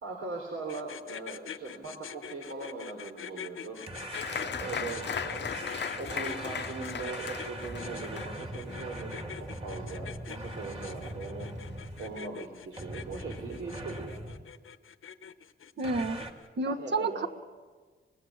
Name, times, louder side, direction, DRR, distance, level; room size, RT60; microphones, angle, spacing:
voice 1, 0.0-3.8 4.3-5.6 6.0-11.5 12.0-14.2 16.7-17.3, right 3 dB, 90° right, 1 dB, 3.5 m, -40 dB
sound 1, 0.7-16.5, left 8 dB, 80° left, 1.1 m, -45 dB
sound 2, 3.9-12.3 12.8-14.5 15.8-16.3, right 1 dB, 25° right, 2.4 m, -41 dB
Applause, 4.1-11.2 11.5-12.2 12.6-12.7 13.0-13.5, left 7 dB, 60° left, 0.8 m, -38 dB
voice 2, 15.8-16.2 16.6-17.3, right 3 dB, 55° right, 6 dB, 1.5 m, -30 dB
25.0 x 20.5 x 7.4 m, 1.4 s
wide cardioid pair, 130°, 21 cm